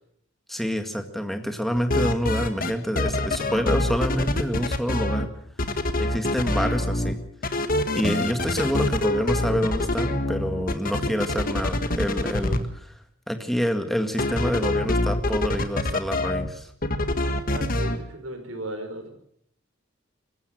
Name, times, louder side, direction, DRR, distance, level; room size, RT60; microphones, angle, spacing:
voice 1, 0.5-5.3 6.0-7.2 7.9-13.0 13.3-16.7, equal, ahead, 6 dB, 1.9 m, -27 dB
sound 1, 1.8-2.7 3.0-5.3 5.6-7.1 7.4-12.6 14.2-16.5 16.8-18.0, left 1 dB, 45° left, 1.6 m, -25 dB
voice 2, 17.4-19.1, right 1 dB, 85° right, 6 dB, 4.9 m, -36 dB
24.0 x 14.5 x 7.7 m, 0.70 s
head